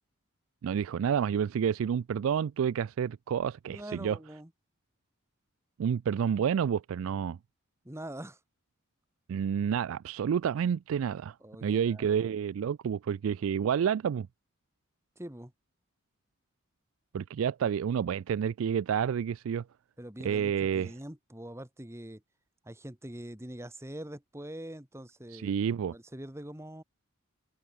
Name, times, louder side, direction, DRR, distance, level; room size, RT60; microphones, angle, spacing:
voice 1, 0.6-4.2 5.8-7.4 9.3-11.3 11.6-14.3 17.1-19.6 20.2-20.9 25.3-25.9, right 8 dB, 75° right, 0.3 m, -29 dB
voice 2, 3.7-4.5 7.8-8.4 11.4-12.1 15.2-15.5 20.0-22.2 22.6-25.6 25.9-26.8, right 1 dB, 15° right, 1.8 m, -43 dB
head